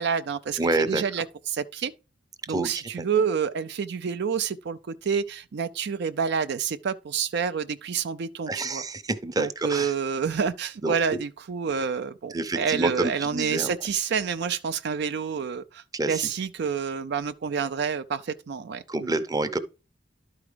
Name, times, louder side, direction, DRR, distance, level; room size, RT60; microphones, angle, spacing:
voice 1, 0.0-0.6 0.9-1.9 2.5-8.8 9.4-19.1, right 6 dB, 60° right, 0.4 m, -28 dB
voice 2, 0.6-1.0 2.5-3.0 8.5-9.9 10.8-10.9 12.3-13.7 15.9-16.3 18.9-19.6, right 2 dB, 20° right, 0.7 m, -28 dB
11.5 x 4.8 x 3.3 m
head